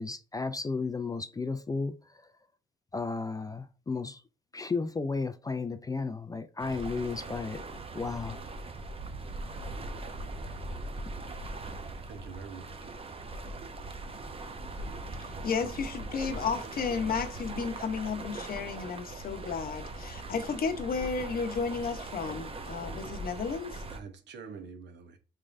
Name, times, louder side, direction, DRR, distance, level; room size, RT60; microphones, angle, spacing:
voice 1, 0.0-2.3 2.9-4.2 4.5-7.6 7.9-8.4, left 4 dB, 20° left, 0.3 m, -33 dB
sound 1, 6.6-24.0, right 2 dB, 30° right, 0.6 m, -40 dB
voice 2, 12.0-12.9 23.9-25.2, right 5 dB, 60° right, 0.9 m, -45 dB
voice 3, 15.2-23.8, left 5 dB, 50° left, 0.8 m, -33 dB
3.6 x 3.2 x 2.5 m
cardioid pair, 90°, 20 cm